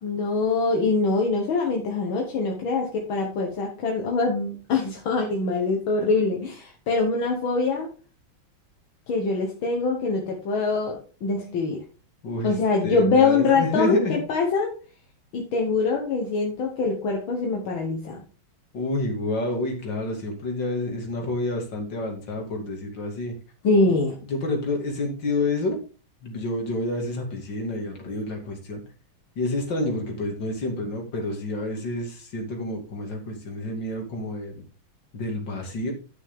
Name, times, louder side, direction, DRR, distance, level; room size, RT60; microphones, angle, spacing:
voice 1, 0.0-7.9 9.1-11.8 12.4-14.8 15.3-18.2 23.6-24.2, left 3 dB, 75° left, 1 dB, 2.2 m, -24 dB
voice 2, 12.2-12.6 12.8-14.2 18.7-23.3 24.3-25.8 26.2-28.8 29.4-34.5 35.1-35.9, left 2 dB, 60° left, 1 dB, 3.2 m, -29 dB
11.5 x 6.3 x 3.8 m, 0.34 s
omnidirectional pair, 2.2 m